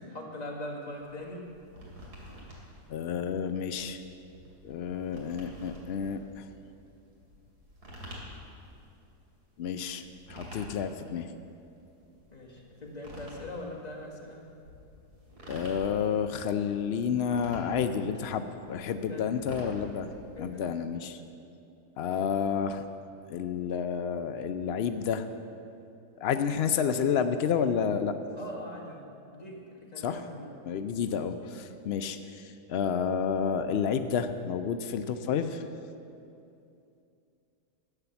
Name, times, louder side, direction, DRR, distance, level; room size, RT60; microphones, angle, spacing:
voice 1, 0.0-1.5 12.3-14.4 18.9-19.4 20.4-20.8 28.3-30.5, left 1 dB, 25° left, -2 dB, 1.8 m, -41 dB
sound 1, 1.0-20.8, equal, 75° right, 3.1 m, -49 dB
voice 2, 2.9-4.0 4.6-6.4 9.6-10.0 10.3-11.3 15.5-20.1 20.4-21.2 22.0-22.8 23.3-25.3 26.2-28.1 30.0-30.2 30.6-35.6, left 7 dB, 90° left, 9 dB, 0.5 m, -30 dB
12.0 x 9.1 x 7.0 m, 2.6 s
omnidirectional pair, 1.7 m